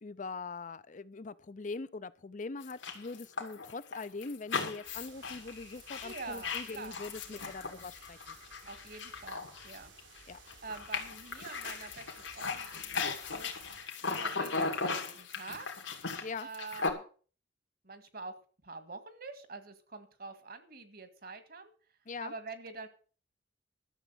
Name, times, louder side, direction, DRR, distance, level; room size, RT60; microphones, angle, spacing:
voice 1, 0.0-8.2 10.3-10.4 16.2-16.5 22.1-22.3, left 3 dB, 45° left, 0.5 m, -42 dB
sound 1, 2.6-10.2 10.5-16.9, left 4 dB, 90° left, 2.4 m, -37 dB
sound 2, 4.8-13.9, right 4 dB, 90° right, 3.8 m, -57 dB
voice 2, 6.0-7.6 8.7-9.9 10.3-12.1 12.3-13.5 14.0-15.7 16.4-17.0 17.8-18.3 18.6-21.7 22.2-22.9, right 4 dB, 55° right, 1.8 m, -46 dB
12.5 x 7.2 x 7.8 m
head